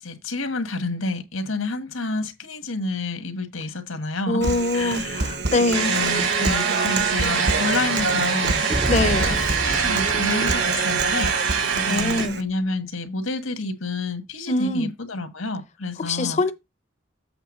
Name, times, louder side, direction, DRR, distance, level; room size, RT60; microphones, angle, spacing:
voice 1, 0.0-4.4 4.7-5.3 5.9-8.6 9.0-16.4, left 3 dB, 90° left, 1.7 m, -29 dB
voice 2, 4.3-6.0 8.9-9.4 11.9-12.4 14.5-14.9 16.0-16.5, left 2 dB, 35° left, 0.6 m, -23 dB
Human voice, 4.4-12.4, right 4 dB, 50° right, 0.8 m, -27 dB
sound 1, 5.7-12.3, right 5 dB, 70° right, 2.2 m, -24 dB
sound 2, 8.7-11.3, right 1 dB, 15° right, 0.4 m, -29 dB
8.1 x 3.5 x 6.5 m
head